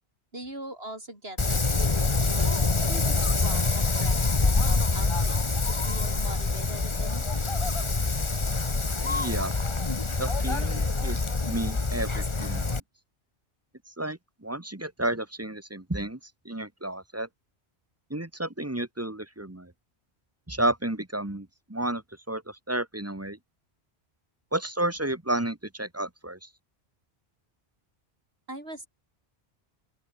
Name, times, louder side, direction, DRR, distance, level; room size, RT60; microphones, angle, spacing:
voice 1, 0.3-5.4 5.7-7.3 28.5-28.9, right 1 dB, 65° right, 7.2 m, -42 dB
Wind, 1.4-12.8, left 3 dB, 25° left, 1.2 m, -26 dB
voice 2, 9.0-9.5 10.2-11.2 11.5-12.8 14.0-16.2 16.4-17.3 18.1-19.7 20.5-23.4 24.5-26.5, right 1 dB, 15° right, 1.4 m, -32 dB
open air
omnidirectional pair, 1.1 m